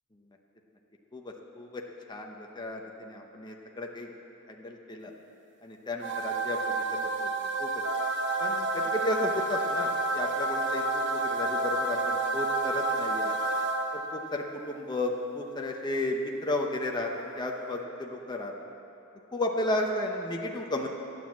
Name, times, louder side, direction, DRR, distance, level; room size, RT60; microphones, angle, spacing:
voice 1, 1.1-1.8 2.1-4.1 4.5-5.1 5.6-7.3 7.6-7.7 8.4-13.3 13.9-17.1 17.4-18.5 19.3-20.9, left 1 dB, 20° left, 1 dB, 0.8 m, -33 dB
sound 1, 6.0-14.3, right 2 dB, 55° right, 0.9 m, -29 dB
12.0 x 9.4 x 7.4 m, 3.0 s
head